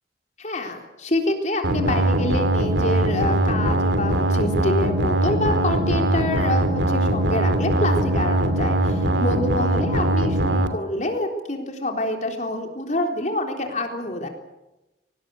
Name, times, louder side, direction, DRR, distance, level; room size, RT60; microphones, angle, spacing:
voice 1, 0.4-14.3, left 1 dB, 40° left, 3 dB, 3.8 m, -27 dB
sound 1, 1.6-10.7, right 1 dB, 90° right, 2.9 m, -21 dB
24.5 x 19.0 x 8.3 m, 0.98 s
head